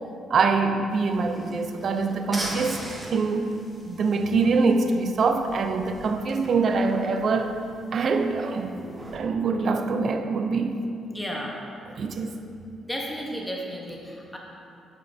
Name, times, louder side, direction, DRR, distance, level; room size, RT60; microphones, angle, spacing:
voice 1, 0.3-2.8 3.1-3.5 3.8-7.6 7.9-8.8 9.1-10.8 12.0-12.4, right 4 dB, 55° right, 6 dB, 0.5 m, -24 dB
sound 1, 0.9-9.2, right 1 dB, 15° right, 1.4 m, -41 dB
voice 2, 11.1-11.6 12.8-14.4, equal, 10° left, -2 dB, 1.0 m, -33 dB
11.0 x 5.6 x 2.7 m, 2.6 s
cardioid pair, 90°, 0 cm